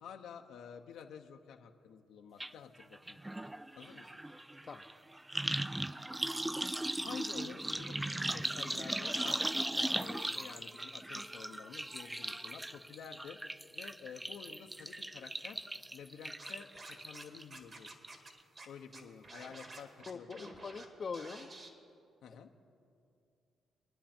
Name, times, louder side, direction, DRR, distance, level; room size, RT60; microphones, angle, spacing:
voice 1, 0.0-3.2 3.8-4.1 7.0-13.4 13.7-15.6 15.9-17.9 18.7-20.7 22.2-22.5, left 7 dB, 80° left, 3 dB, 0.9 m, -50 dB
sound 1, 2.4-2.5 2.8-17.4 17.8-18.3 18.6-18.7, right 1 dB, 10° right, 0.3 m, -38 dB
Scratching (performance technique), 16.4-17.2 17.5-18.3 18.6-18.7 18.9-20.9 21.1-21.7, right 2 dB, 40° right, 2.1 m, -50 dB
voice 2, 20.1-21.5, left 5 dB, 40° left, 9 dB, 0.7 m, -43 dB
27.0 x 10.0 x 4.4 m, 2.5 s
cardioid pair, 90°, 0 cm